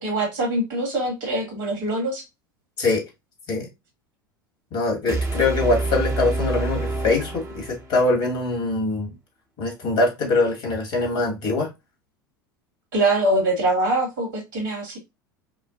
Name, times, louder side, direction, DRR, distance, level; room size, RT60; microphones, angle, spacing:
voice 1, 0.0-2.2 12.9-15.0, right 1 dB, 60° right, 1.9 m, -23 dB
voice 2, 4.7-9.1 9.6-11.7, left 3 dB, 50° left, 2.0 m, -23 dB
sound 1, 5.1-8.1, right 2 dB, 25° right, 1.0 m, -27 dB
5.0 x 2.2 x 2.5 m
figure-of-eight pair, 75°, 11 cm